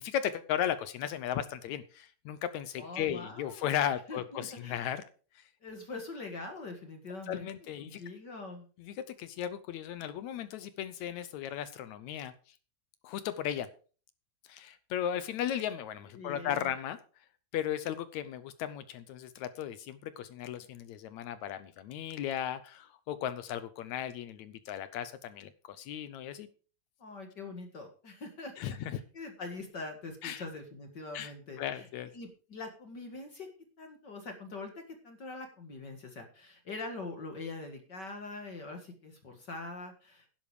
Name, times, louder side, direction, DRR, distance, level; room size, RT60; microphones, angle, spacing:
voice 1, 0.0-5.0 5.3-5.5 7.3-8.0 8.8-12.3 13.0-13.7 14.5-17.0 17.5-26.5 28.6-29.0 30.2-30.4 31.1-31.3 31.6-32.1, left 10 dB, 75° left, 13 dB, 1.7 m, -36 dB
voice 2, 2.8-3.7 4.1-4.9 5.6-7.5 7.8-8.7 16.2-16.7 27.0-31.9 32.1-33.5 33.8-34.7 35.0-40.3, left 3 dB, 40° left, 4 dB, 1.6 m, -43 dB
11.5 x 10.5 x 4.9 m, 0.39 s
omnidirectional pair, 4.0 m